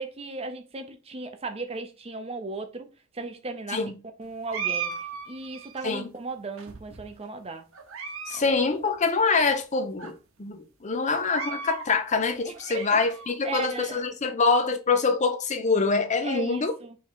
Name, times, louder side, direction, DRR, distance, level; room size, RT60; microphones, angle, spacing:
voice 1, 0.0-2.9 3.1-3.8 4.2-5.0 5.3-7.7 8.3-8.6 12.4-12.8 13.4-14.0 16.2-17.0, right 3 dB, 30° right, 0.7 m, -36 dB
sound 1, 4.5-5.9 6.6-7.2 7.7-8.4 8.7-8.8 9.5-9.6 10.0-10.1 11.1-11.9 12.4-13.3, right 6 dB, 65° right, 0.9 m, -36 dB
voice 2, 8.3-16.7, left 4 dB, 35° left, 0.6 m, -25 dB
3.7 x 3.1 x 4.5 m
head